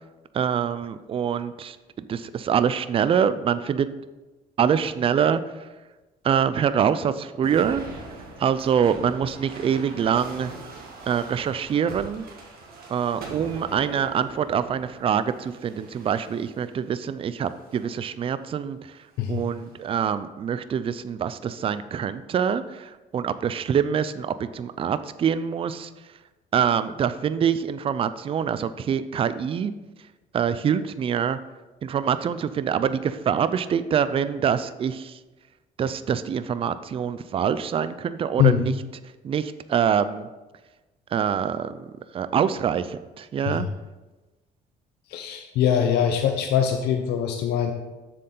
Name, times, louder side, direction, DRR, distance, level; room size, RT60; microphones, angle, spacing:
voice 1, 0.3-1.8 2.1-3.9 4.6-5.4 6.2-7.8 8.4-10.5 11.1-12.3 12.9-19.0 19.3-25.9 26.5-29.7 30.3-31.4 31.8-35.2 35.8-38.7 39.2-40.3 41.1-41.9 42.1-43.7, right 8 dB, 35° right, 13 dB, 0.4 m, -25 dB
sound 1, 7.4-16.8 17.5-18.0 19.1-19.8, right 3 dB, 65° right, 2.1 m, -42 dB
voice 2, 45.1-47.7, left 9 dB, 75° left, 5 dB, 0.7 m, -22 dB
7.4 x 6.7 x 3.9 m, 1.2 s
cardioid pair, 110°, 17 cm